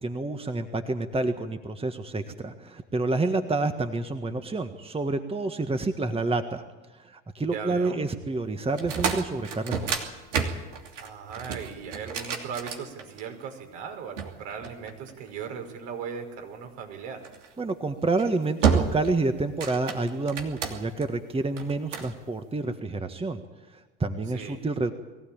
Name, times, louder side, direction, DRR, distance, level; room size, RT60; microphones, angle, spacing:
voice 1, 0.0-6.6 6.9-9.9 17.6-23.4 23.7-24.9, right 3 dB, 15° right, 7 dB, 1.6 m, -28 dB
voice 2, 7.4-8.0 11.0-17.3 24.3-24.6, right 6 dB, 70° right, 3 dB, 5.5 m, -38 dB
sound 1, 8.7-13.4 14.2-15.5 17.2-17.5 18.0-18.3 18.6-19.2 19.5-21.0 21.6-22.1, right 7 dB, 90° right, 2.9 m, -29 dB
22.5 x 16.5 x 8.9 m, 1.2 s
hypercardioid pair, 80°, 36 cm